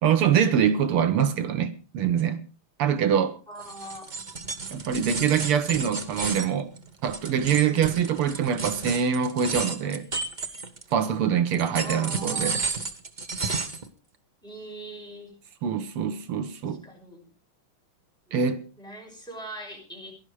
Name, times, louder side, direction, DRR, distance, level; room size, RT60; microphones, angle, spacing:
voice 1, 0.0-2.4 2.8-3.4 4.7-6.7 7.0-10.1 10.9-12.6 15.6-16.8 18.3-18.6, right 8 dB, 85° right, 2.1 m, -24 dB
voice 2, 3.5-4.1 7.6-8.1 11.8-12.6 14.4-15.4 16.7-17.3 18.3-18.5 18.8-20.1, right 1 dB, ahead, 5.5 m, -41 dB
sound 1, 3.6-11.0 11.5-13.9, right 4 dB, 30° right, 0.9 m, -32 dB
17.0 x 11.5 x 4.7 m
omnidirectional pair, 2.4 m